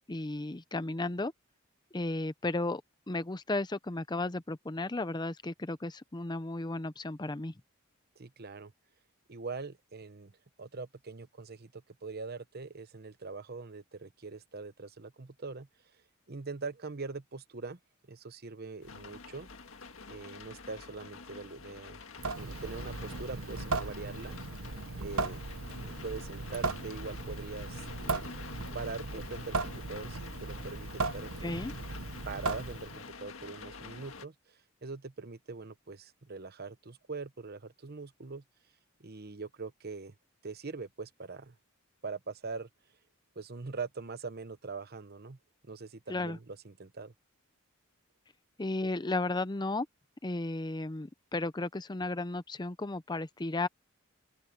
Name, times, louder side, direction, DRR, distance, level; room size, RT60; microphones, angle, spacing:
voice 1, 0.1-1.3 1.9-2.8 3.1-7.5 31.4-31.7 46.1-46.4 48.6-49.9 50.2-53.7, left 2 dB, 20° left, 0.6 m, -34 dB
voice 2, 8.2-8.7 9.3-10.3 10.6-15.7 16.3-17.8 18.1-19.5 20.1-22.0 22.4-24.4 25.0-25.4 25.9-28.3 28.7-31.5 32.2-38.4 39.0-40.1 40.4-41.6 42.0-42.7 43.4-45.4 45.6-47.1, right 4 dB, 50° right, 1.0 m, -42 dB
sound 1, 18.8-34.3, left 4 dB, 70° left, 1.8 m, -48 dB
Water tap faucet / Sink (filling or washing) / Drip, 22.2-33.1, right 3 dB, 85° right, 1.2 m, -37 dB
open air
head